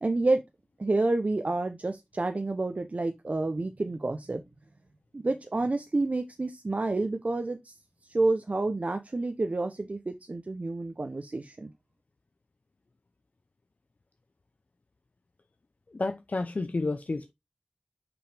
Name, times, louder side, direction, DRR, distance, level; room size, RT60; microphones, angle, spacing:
voice 1, 0.0-0.4 0.8-4.4 5.1-7.8 8.0-11.7, right 2 dB, 60° right, 0.6 m, -29 dB
voice 2, 15.9-17.3, left 3 dB, 65° left, 0.6 m, -30 dB
5.9 x 5.3 x 3.3 m
wide cardioid pair, 45°, 3 cm